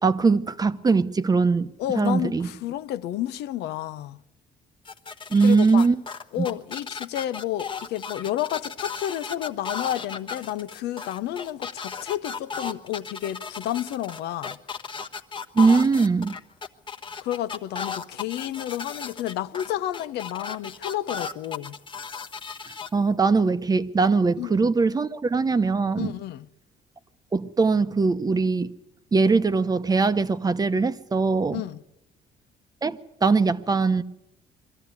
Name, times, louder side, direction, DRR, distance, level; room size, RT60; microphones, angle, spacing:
voice 1, 0.0-1.7 2.0-2.5 5.3-6.0 6.4-6.5 15.6-16.4 22.9-26.1 27.3-28.7 29.1-31.6 32.8-34.0, right 4 dB, 20° right, 0.9 m, -21 dB
voice 2, 1.8-4.2 5.4-5.9 6.3-14.6 17.2-21.8 24.4-24.5 25.9-26.5 31.5-31.8, left 12 dB, 80° left, 0.7 m, -31 dB
sound 1, 4.9-22.9, left 5 dB, 30° left, 1.2 m, -35 dB
22.5 x 14.0 x 9.6 m
cardioid pair, 110°, 17 cm